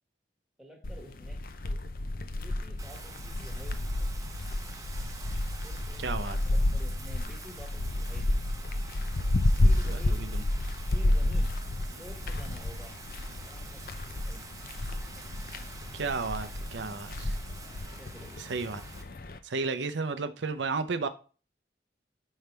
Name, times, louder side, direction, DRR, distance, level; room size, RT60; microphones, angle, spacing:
voice 1, 0.6-1.4 2.2-4.1 5.6-8.5 9.6-10.4 10.9-11.5 11.9-13.0 13.3-14.6 18.0-18.4, equal, ahead, 1.3 m, -50 dB
sound 1, 0.8-19.4, left 1 dB, 50° left, 0.5 m, -31 dB
Bathtub (filling or washing), 2.8-19.0, right 4 dB, 20° right, 0.8 m, -48 dB
voice 2, 6.0-6.4 15.9-17.4 18.4-18.8 19.4-21.1, right 4 dB, 85° right, 0.6 m, -32 dB
5.5 x 5.1 x 4.5 m
head